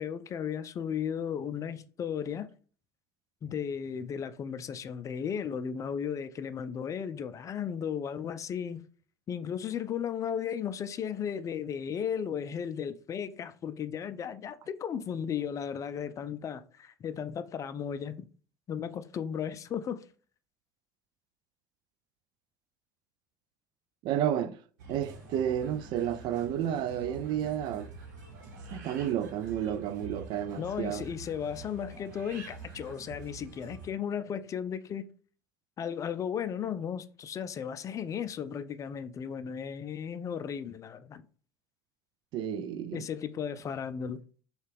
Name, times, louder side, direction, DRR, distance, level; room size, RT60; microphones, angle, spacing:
voice 1, 0.0-2.5 3.4-8.8 9.3-18.3 18.7-20.0 30.6-35.1 35.8-41.2 42.9-44.2, left 8 dB, 35° left, 0.4 m, -35 dB
voice 2, 24.0-24.6 24.9-27.9 28.7-31.0 42.3-43.0, right 10 dB, 50° right, 0.4 m, -31 dB
sound 1, 24.8-33.9, right 3 dB, 70° right, 1.0 m, -46 dB
6.3 x 2.4 x 3.4 m
figure-of-eight pair, 65°, 10 cm